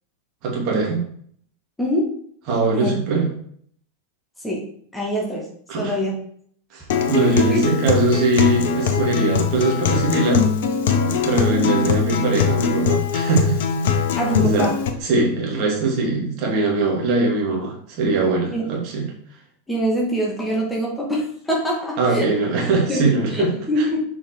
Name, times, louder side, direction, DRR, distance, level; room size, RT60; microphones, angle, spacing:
voice 1, 0.4-1.0 2.5-3.3 5.7-6.0 6.7-10.5 11.2-14.0 14.4-14.7 15.0-19.1 22.0-23.5 23.8-23.9, right 3 dB, 40° right, -1 dB, 2.8 m, -21 dB
voice 2, 1.8-2.2 2.7-3.0 4.4-4.7 4.9-5.5 5.8-6.2 7.2-7.6 11.4-11.7 14.2-14.8 18.5-18.6 19.7-22.3 22.9-24.0, equal, 5° left, -3 dB, 2.3 m, -24 dB
Acoustic guitar, 6.9-14.9, left 6 dB, 55° left, 1.0 m, -21 dB
7.0 x 5.6 x 4.7 m, 0.62 s
figure-of-eight pair, 90°, 0 cm